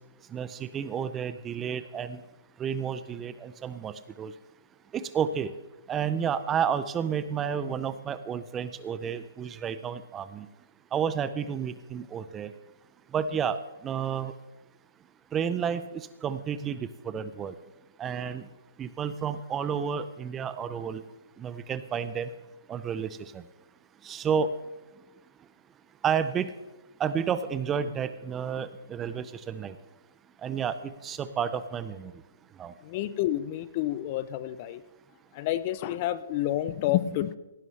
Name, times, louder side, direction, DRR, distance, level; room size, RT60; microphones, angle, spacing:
voice 1, 0.3-2.2 2.6-4.3 4.9-5.5 5.9-10.5 10.9-12.5 13.1-13.6 13.8-14.3 15.3-17.5 18.0-18.4 18.8-21.0 21.4-22.3 22.7-23.4 24.0-24.5 26.0-26.5 27.0-29.8 30.4-32.1 32.6-32.7, right 7 dB, 15° right, 13 dB, 0.5 m, -31 dB
voice 2, 32.8-34.8 35.3-37.4, left 13 dB, 35° left, 16 dB, 0.5 m, -29 dB
17.0 x 11.0 x 3.3 m, 1.1 s
hypercardioid pair, 150°, 0 cm